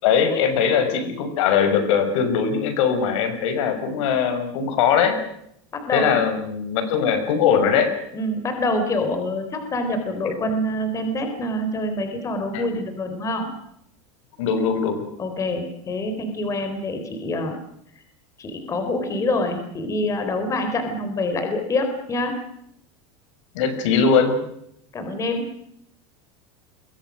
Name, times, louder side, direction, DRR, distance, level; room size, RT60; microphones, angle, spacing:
voice 1, 0.0-5.2 5.9-7.9 12.5-12.7 14.4-15.1 23.5-24.4, left 6 dB, 70° left, 9 dB, 6.0 m, -20 dB
voice 2, 5.7-6.2 8.1-13.5 15.2-17.6 18.4-22.3 24.9-25.5, left 1 dB, 20° left, 6 dB, 4.0 m, -26 dB
27.5 x 22.5 x 6.4 m, 0.74 s
supercardioid pair, 165°, 16 cm